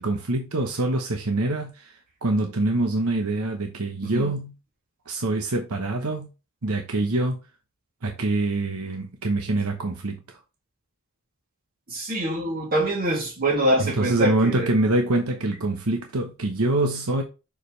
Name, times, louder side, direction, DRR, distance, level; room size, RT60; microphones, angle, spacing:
voice 1, 0.0-4.5 5.1-6.3 6.6-7.4 8.0-10.4 13.8-17.2, right 2 dB, 90° right, 1.0 m, -25 dB
voice 2, 4.0-4.3 11.9-14.7, right 1 dB, 45° right, 3.0 m, -24 dB
6.8 x 5.0 x 3.3 m
head